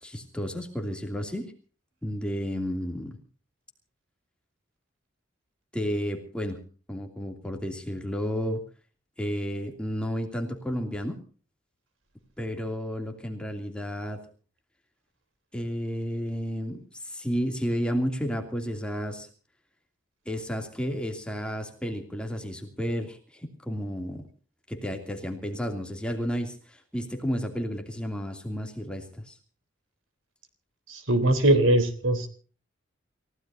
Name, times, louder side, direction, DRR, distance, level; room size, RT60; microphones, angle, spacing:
voice 1, 0.0-1.5 2.0-3.2 5.7-6.6 6.9-8.6 9.2-11.2 12.4-14.2 15.5-19.3 20.3-24.2 24.7-29.4, equal, 5° left, 3 dB, 2.7 m, -32 dB
voice 2, 30.9-32.3, right 1 dB, 85° right, 9 dB, 3.6 m, -21 dB
29.5 x 16.5 x 2.7 m, 0.40 s
head